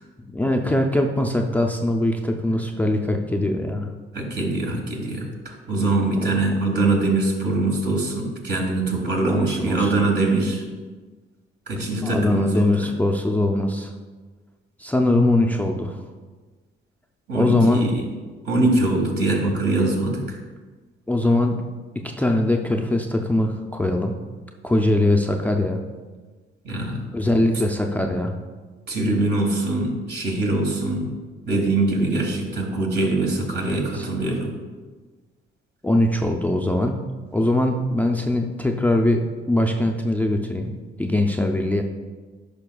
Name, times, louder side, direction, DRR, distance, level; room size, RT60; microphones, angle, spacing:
voice 1, 0.3-3.9 6.2-6.3 9.2-9.9 12.0-13.9 14.8-16.0 17.3-17.8 21.1-21.6 22.2-24.1 24.6-25.8 27.1-28.3 33.6-34.1 35.8-37.0 37.3-40.7 41.0-41.8, left 1 dB, 10° left, 3 dB, 0.4 m, -21 dB
voice 2, 4.1-10.6 11.7-12.9 17.3-18.1 18.4-20.4 26.6-27.0 28.9-31.1 31.4-34.5, right 2 dB, 60° right, 1 dB, 1.6 m, -23 dB
10.5 x 5.2 x 2.3 m, 1.4 s
cardioid pair, 90°, 20 cm